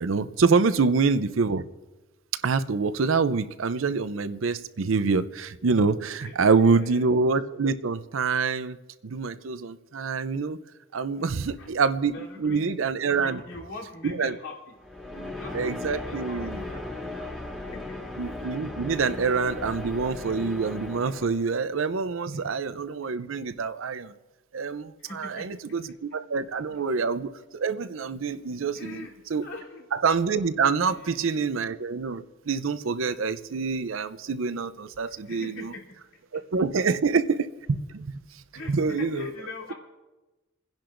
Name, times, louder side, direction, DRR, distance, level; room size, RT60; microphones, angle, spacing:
voice 1, 0.0-1.7 2.4-8.8 9.0-10.6 10.9-13.4 14.0-14.3 15.5-16.6 18.2-24.1 24.5-29.1 29.3-29.5 30.0-35.7 36.3-38.1 38.7-39.3, right 4 dB, 80° right, 0.6 m, -26 dB
voice 2, 6.2-7.1 11.2-11.7 12.1-12.7 13.1-14.8 15.1-17.3 17.6-18.0 22.3-22.4 25.0-25.6 28.7-29.1 29.4-29.8 30.7-31.5 35.0-35.8 38.5-39.7, left 2 dB, 85° left, 3.3 m, -43 dB
sound 1, 14.8-21.7, left 2 dB, 5° left, 1.6 m, -37 dB
29.0 x 10.5 x 2.6 m
head